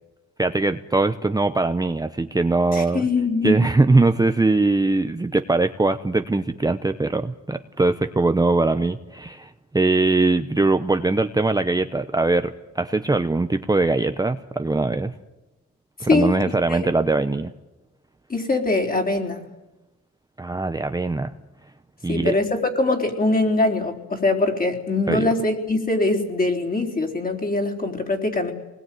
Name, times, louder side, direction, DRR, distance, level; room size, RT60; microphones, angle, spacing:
voice 1, 0.4-3.0 3.4-15.1 16.0-17.5 20.4-21.3 22.0-22.3 25.1-25.3, right 3 dB, 10° right, 8 dB, 0.9 m, -21 dB
voice 2, 2.7-3.6 16.1-16.8 18.3-19.4 22.1-28.5, left 2 dB, 30° left, 2 dB, 4.2 m, -22 dB
25.5 x 20.5 x 9.4 m, 1.1 s
cardioid pair, 90°, 30 cm